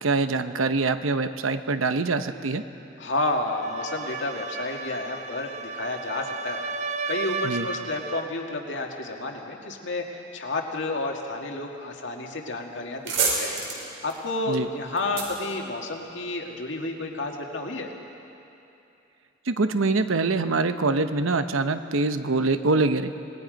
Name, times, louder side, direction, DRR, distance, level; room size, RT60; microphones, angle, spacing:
voice 1, 0.0-2.6 7.4-7.7 14.5-14.7 19.5-23.1, right 3 dB, 85° right, 10 dB, 0.8 m, -24 dB
voice 2, 3.0-6.6 7.1-10.0 10.3-13.5 14.0-17.9, left 2 dB, 65° left, 1 dB, 2.0 m, -30 dB
sound 1, 3.5-8.4, right 5 dB, 35° right, 0.6 m, -34 dB
sound 2, 12.3-12.5 12.8-16.4, right 4 dB, 65° right, 4.8 m, -30 dB
26.5 x 19.0 x 5.2 m, 2.8 s
head